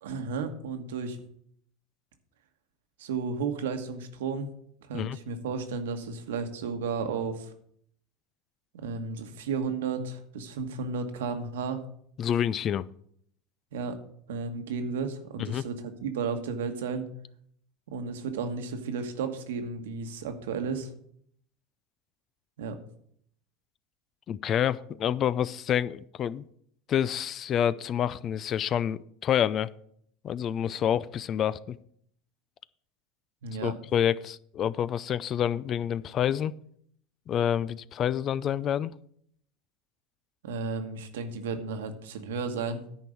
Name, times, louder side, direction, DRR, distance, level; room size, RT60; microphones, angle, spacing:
voice 1, 0.0-1.2 3.0-4.5 4.8-7.5 8.7-11.8 13.7-14.0 14.3-17.1 17.9-20.9 22.6-22.8 33.4-33.7 40.4-42.8, right 5 dB, 90° right, 7 dB, 1.3 m, -33 dB
voice 2, 12.2-12.9 15.4-15.6 24.3-26.5 26.9-29.7 30.2-31.8 33.6-36.5 37.3-38.9, left 9 dB, 40° left, 19 dB, 0.4 m, -28 dB
10.0 x 4.6 x 7.8 m, 0.67 s
supercardioid pair, 110°, 0 cm